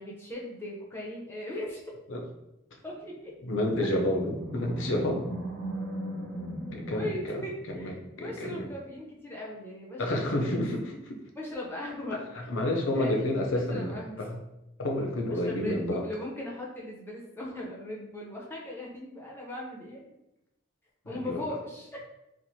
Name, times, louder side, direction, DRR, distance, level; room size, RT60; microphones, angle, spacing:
voice 1, 0.0-1.9 2.8-3.4 6.9-10.5 11.4-12.2 12.9-14.2 15.2-20.0 21.0-22.0, left 1 dB, 10° left, -4 dB, 0.6 m, -39 dB
voice 2, 3.4-5.3 6.7-8.7 10.0-11.2 12.5-14.4 14.8-16.0 21.0-21.5, left 1 dB, 75° left, 1 dB, 0.6 m, -30 dB
Animal, 4.0-8.0, right 1 dB, 55° right, 1.1 m, -38 dB
4.3 x 2.5 x 2.7 m, 0.90 s
head